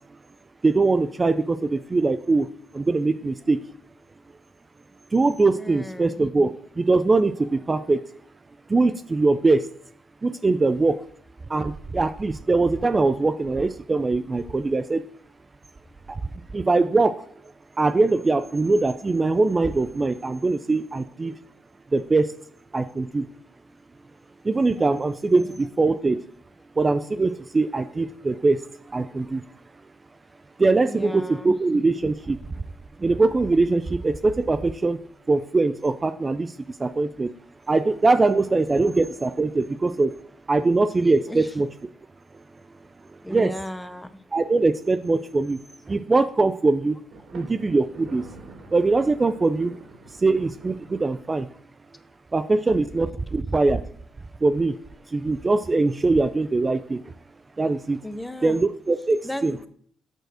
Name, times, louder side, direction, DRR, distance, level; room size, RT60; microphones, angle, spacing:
voice 1, 0.6-3.6 5.1-8.0 8.7-9.7 10.2-11.0 11.5-15.0 16.1-16.2 16.5-17.2 17.8-21.4 21.9-22.3 22.7-23.3 24.4-26.2 26.8-29.5 30.6-32.4 33.0-35.0 35.3-37.3 37.7-40.2 40.5-41.7 43.3-43.5 44.3-45.6 45.9-47.0 47.3-48.3 48.7-49.7 50.2-51.5 52.3-53.8 54.4-54.8 55.1-57.1 57.6-58.0 58.4-59.5, right 3 dB, 25° right, 11 dB, 0.4 m, -22 dB
voice 2, 5.5-6.2 25.3-25.7 30.8-31.6 41.3-41.6 43.2-44.1 58.0-58.6 59.2-59.7, left 1 dB, 10° left, 12 dB, 0.7 m, -36 dB
Thunder, 47.1-51.7, right 3 dB, 75° right, 2.6 m, -46 dB
7.9 x 4.5 x 6.2 m, 0.62 s
cardioid pair, 90°, 0 cm